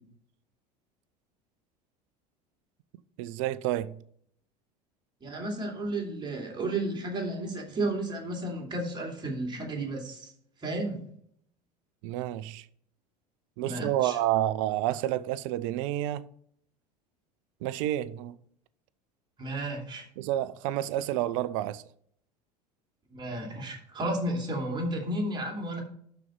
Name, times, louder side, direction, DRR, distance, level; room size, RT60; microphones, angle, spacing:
voice 1, 3.2-4.0 12.0-12.7 13.6-16.2 17.6-18.4 20.2-21.8, right 13 dB, 55° right, 0.5 m, -29 dB
voice 2, 5.2-10.3 10.6-11.1 13.6-14.2 19.4-20.1 23.1-25.8, right 1 dB, 20° right, 2.9 m, -33 dB
12.0 x 4.5 x 5.2 m
figure-of-eight pair, 70°, 21 cm